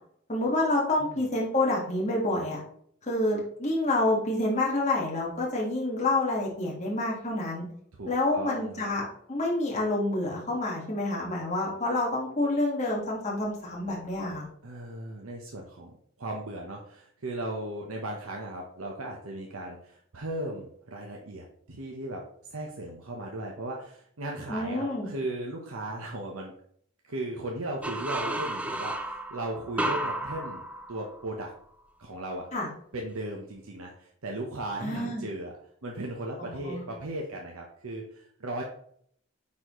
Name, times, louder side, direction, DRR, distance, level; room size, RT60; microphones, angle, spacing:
voice 1, 0.3-2.6 3.1-7.6 8.1-14.4 24.5-25.1 32.5-32.7 34.8-35.2 36.4-36.8, left 2 dB, 30° left, -4 dB, 1.7 m, -28 dB
voice 2, 8.0-8.9 14.6-15.9 16.2-22.2 22.5-26.5 27.0-30.6 30.9-31.5 32.0-32.5 32.9-35.5 35.8-38.6, right 1 dB, 80° right, 0 dB, 1.0 m, -36 dB
sound 1, 27.8-31.4, right 1 dB, 5° right, 0.4 m, -33 dB
9.5 x 4.2 x 3.1 m, 0.64 s
head